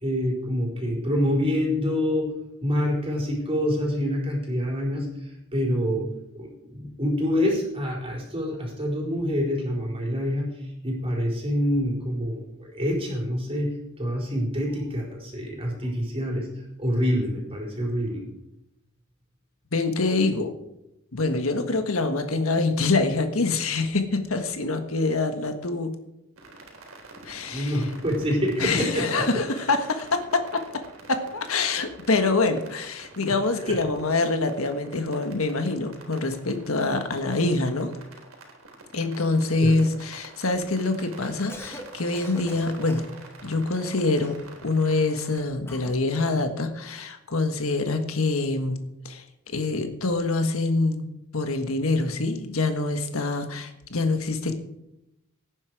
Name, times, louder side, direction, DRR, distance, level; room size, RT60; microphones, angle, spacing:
voice 1, 0.0-2.3 2.6-6.1 6.3-16.5 16.8-18.2 27.4-29.2 33.3-33.8 39.6-39.7, equal, 25° right, -1 dB, 4.7 m, -26 dB
voice 2, 19.7-20.5 21.1-25.9 27.2-27.9 28.6-30.8 31.1-38.0 38.9-43.1 43.4-44.4 44.6-48.8 49.0-51.0 51.3-54.5, left 3 dB, 75° left, 7 dB, 1.6 m, -25 dB
sound 1, 26.4-45.4, right 2 dB, 75° right, 3.8 m, -47 dB
Cough, 41.5-41.9 42.1-43.1 43.8-44.5 45.7-46.0, left 1 dB, 10° left, 1.7 m, -42 dB
17.5 x 9.9 x 4.9 m, 0.85 s
head